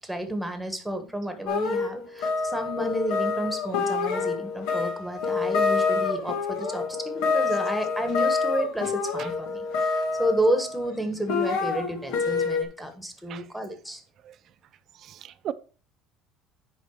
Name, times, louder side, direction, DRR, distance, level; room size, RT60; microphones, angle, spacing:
voice 1, 0.0-14.0, right 1 dB, ahead, 1.5 m, -31 dB
sound 1, 1.5-10.9 11.3-12.6, left 4 dB, 80° left, 1.9 m, -27 dB
voice 2, 15.0-15.5, right 11 dB, 45° right, 0.6 m, -35 dB
8.0 x 5.3 x 4.8 m
cardioid pair, 130°, 0 cm